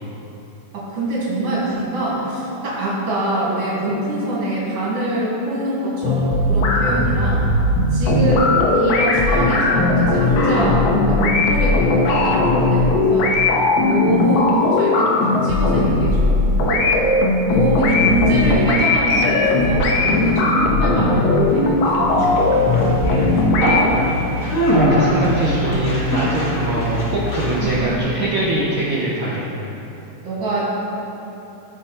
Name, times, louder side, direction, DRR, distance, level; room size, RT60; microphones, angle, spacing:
voice 1, 0.7-7.5 7.9-16.9 17.4-22.6 23.4-24.5 27.6-27.9 28.8-29.1 30.2-30.9, right 1 dB, 40° right, -7 dB, 3.0 m, -24 dB
sound 1, 6.0-23.8, left 2 dB, 70° left, 1.5 m, -18 dB
Conversation, 18.9-28.0, equal, 40° left, 1.2 m, -23 dB
voice 2, 24.7-29.5, right 2 dB, 85° right, -7 dB, 1.1 m, -22 dB
14.0 x 5.5 x 4.3 m, 2.9 s
omnidirectional pair, 3.9 m